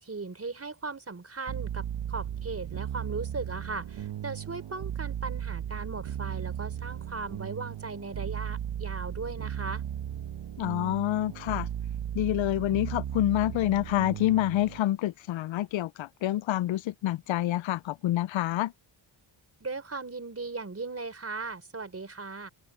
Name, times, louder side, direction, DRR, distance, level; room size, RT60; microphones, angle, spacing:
voice 1, 0.0-9.8 19.6-22.5, right 3 dB, 30° right, 5.1 m, -38 dB
sound 1, 1.5-14.8, right 10 dB, 65° right, 1.0 m, -36 dB
voice 2, 10.6-11.7 12.1-18.7, left 14 dB, 80° left, 0.5 m, -27 dB
open air
cardioid pair, 90°, 46 cm